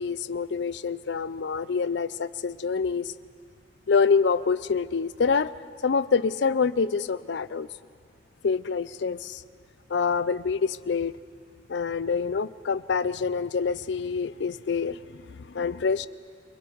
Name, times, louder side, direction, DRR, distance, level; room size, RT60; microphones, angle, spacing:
voice 1, 0.0-3.1 3.9-5.5 5.8-7.7 8.4-9.4 9.9-11.1 11.7-16.1, left 5 dB, 65° left, 17 dB, 0.5 m, -26 dB
29.5 x 21.5 x 4.6 m, 2.2 s
head